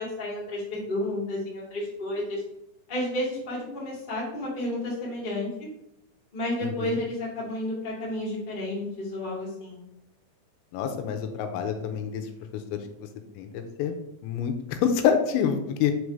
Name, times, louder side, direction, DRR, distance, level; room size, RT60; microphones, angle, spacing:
voice 1, 0.0-2.4 2.9-5.7 6.3-9.8, left 1 dB, 30° left, -5 dB, 0.9 m, -31 dB
voice 2, 6.6-7.0 10.7-12.2 12.7-12.8 13.4-13.9 14.2-15.9, left 8 dB, 85° left, 6 dB, 3.0 m, -27 dB
6.1 x 4.8 x 5.2 m, 0.85 s
omnidirectional pair, 5.2 m